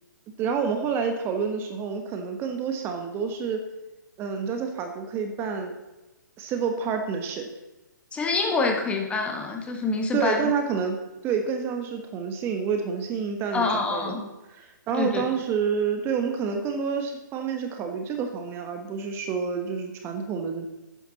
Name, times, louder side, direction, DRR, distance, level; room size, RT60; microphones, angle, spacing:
voice 1, 0.4-3.6 4.2-5.7 6.4-7.5 10.1-11.0 11.2-20.7, right 6 dB, 20° right, 5 dB, 1.3 m, -28 dB
voice 2, 8.1-10.5 13.5-14.2 15.0-15.2, left 4 dB, 10° left, 3 dB, 1.6 m, -26 dB
12.5 x 9.8 x 4.2 m, 1.1 s
hypercardioid pair, 135°, 10 cm